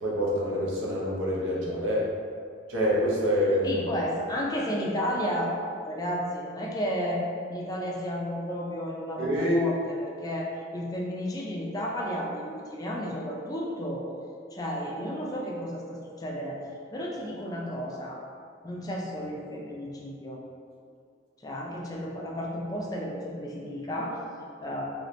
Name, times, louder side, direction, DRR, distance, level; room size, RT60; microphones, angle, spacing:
voice 1, 0.0-2.1 2.7-3.9 9.2-9.6, equal, 80° right, -5 dB, 0.8 m, -26 dB
voice 2, 3.6-5.5 5.9-7.2 7.5-14.0 14.5-16.6 16.9-18.2 18.6-20.4 21.4-24.2 24.6-24.8, equal, 20° left, -2 dB, 0.3 m, -32 dB
2.8 x 2.7 x 3.2 m, 2.2 s
head